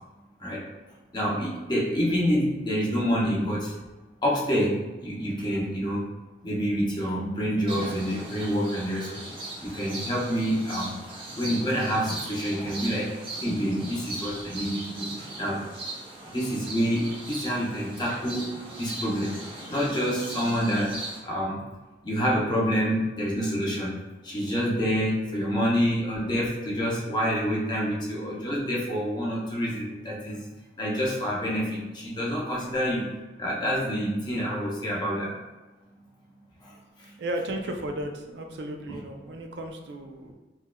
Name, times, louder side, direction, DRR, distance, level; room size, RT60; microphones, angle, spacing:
voice 1, 1.1-3.7 4.2-6.1 6.4-9.3 9.6-11.0 11.4-13.1 13.4-15.6 16.3-18.5 18.8-19.4 19.7-21.0 21.2-21.7 22.0-24.0 24.2-30.5 30.8-33.1 33.4-35.4 36.6-37.1, equal, 25° left, -5 dB, 0.7 m, -27 dB
sound 1, 7.7-21.2, right 1 dB, 30° right, 0.7 m, -38 dB
voice 2, 37.2-40.3, right 1 dB, 75° right, 4 dB, 0.4 m, -34 dB
4.4 x 2.3 x 2.2 m, 1.1 s
head